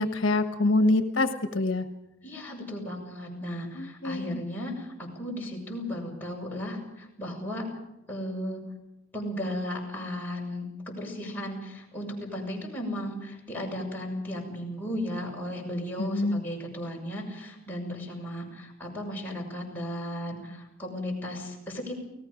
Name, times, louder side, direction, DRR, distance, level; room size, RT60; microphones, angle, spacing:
voice 1, 0.0-1.9 3.7-4.4 16.0-16.4, left 2 dB, 70° left, 7 dB, 1.3 m, -25 dB
voice 2, 2.2-7.6 8.1-8.6 9.1-21.9, equal, 10° left, -3 dB, 6.7 m, -35 dB
29.5 x 18.5 x 5.1 m, 0.90 s
head